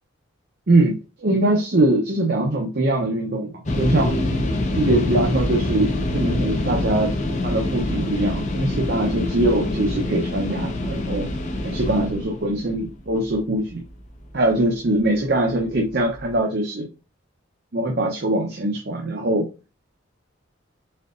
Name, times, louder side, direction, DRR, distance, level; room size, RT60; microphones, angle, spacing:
voice 1, 1.2-4.2 4.7-7.1 7.4-11.3 11.6-13.8 14.3-16.9 17.7-19.5, right 1 dB, 50° right, 1 dB, 0.7 m, -22 dB
sound 1, 3.7-14.5 15.0-15.1 15.5-16.3, left 1 dB, 35° left, 0.7 m, -25 dB
4.3 x 3.7 x 2.4 m, 0.31 s
head